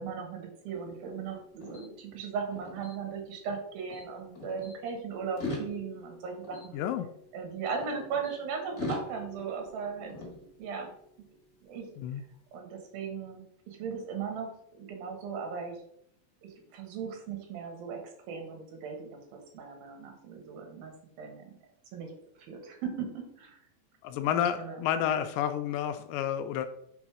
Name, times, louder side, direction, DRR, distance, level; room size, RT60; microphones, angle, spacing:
voice 1, 0.0-6.8 7.3-10.1 10.6-10.9 11.6-11.9 12.5-15.8 16.4-18.0 18.3-20.9 21.2-21.5 21.9-22.1 22.4-23.6 24.3-25.2, right 6 dB, 85° right, 3 dB, 3.2 m, -38 dB
sound 1, 0.7-3.6 3.9-4.7 5.2-8.3 8.8-11.0, left 2 dB, 35° left, 1.6 m, -43 dB
voice 2, 6.7-7.1 12.0-12.2 24.0-26.7, left 10 dB, 80° left, 9 dB, 2.1 m, -30 dB
6.3 x 3.9 x 4.8 m, 0.70 s
omnidirectional pair, 4.1 m